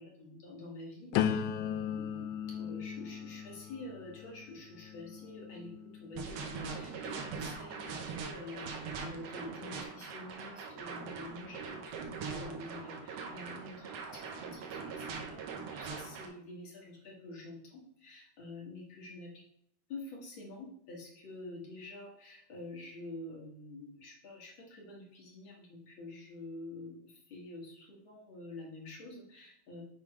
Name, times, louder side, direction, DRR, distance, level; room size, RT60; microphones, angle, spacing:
voice 1, 0.0-19.4 19.9-29.8, left 2 dB, 45° left, -2 dB, 1.9 m, -48 dB
sound 1, 1.1-7.0 7.5-8.0, left 9 dB, 80° left, 1.9 m, -37 dB
sound 2, 6.2-16.3, right 5 dB, 70° right, 1.5 m, -42 dB
8.2 x 3.7 x 4.9 m, 0.70 s
omnidirectional pair, 3.8 m